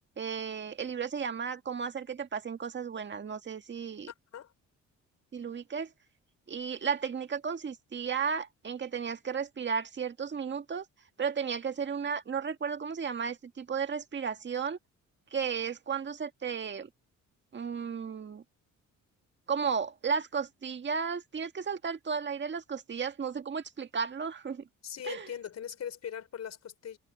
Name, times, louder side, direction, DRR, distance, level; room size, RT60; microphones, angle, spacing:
voice 1, 0.2-4.1 5.3-5.9 6.5-10.8 11.2-14.8 15.3-16.9 17.5-18.4 19.5-24.7 25.0-25.3, right 6 dB, 40° right, 1.8 m, -34 dB
voice 2, 24.8-27.0, left 9 dB, 60° left, 4.5 m, -40 dB
cardioid pair, 90°, 30 cm